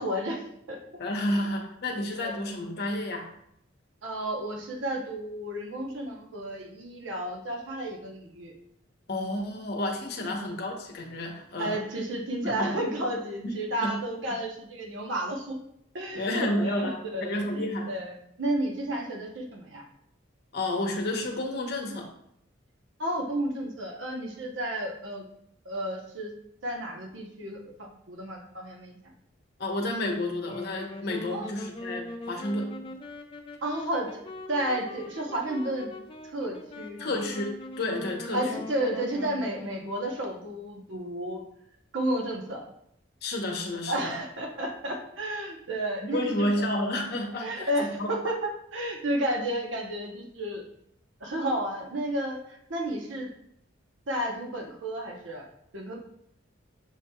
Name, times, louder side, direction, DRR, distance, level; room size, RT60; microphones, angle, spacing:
voice 1, 0.0-0.8 1.3-1.4 1.9-2.4 4.0-8.5 10.2-10.4 11.6-15.6 15.9-19.8 23.0-25.3 25.6-26.3 26.6-29.0 31.3-31.5 33.6-34.2 34.5-35.9 36.3-37.1 38.3-41.4 41.9-42.6 43.9-46.5 47.4-50.6 51.2-53.3 54.1-55.5 55.7-56.0, right 1 dB, 75° right, 1 dB, 0.8 m, -32 dB
voice 2, 1.0-3.3 9.1-11.8 12.6-12.7 13.8-13.9 16.1-17.9 20.5-22.1 29.6-32.9 37.0-37.5 37.8-38.4 43.2-44.2 46.0-48.1, left 1 dB, 55° left, 1 dB, 0.7 m, -30 dB
Wind instrument woodwind instrument, 30.3-40.0, left 2 dB, 25° left, 0.3 m, -42 dB
6.3 x 2.9 x 2.2 m, 0.74 s
head